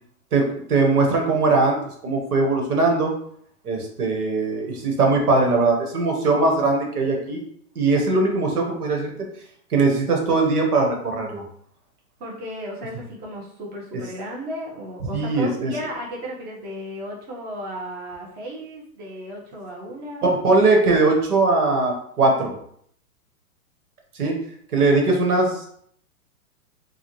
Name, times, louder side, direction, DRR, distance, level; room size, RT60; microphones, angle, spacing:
voice 1, 0.3-1.8 2.0-3.1 3.6-7.4 7.7-9.3 9.7-11.4 15.1-15.7 20.2-22.5 24.1-24.4 24.7-25.7, right 3 dB, 80° right, 1 dB, 1.3 m, -20 dB
voice 2, 12.2-20.3, equal, 20° right, -3 dB, 0.9 m, -34 dB
4.1 x 2.4 x 3.1 m, 0.66 s
hypercardioid pair, 130°, 44 cm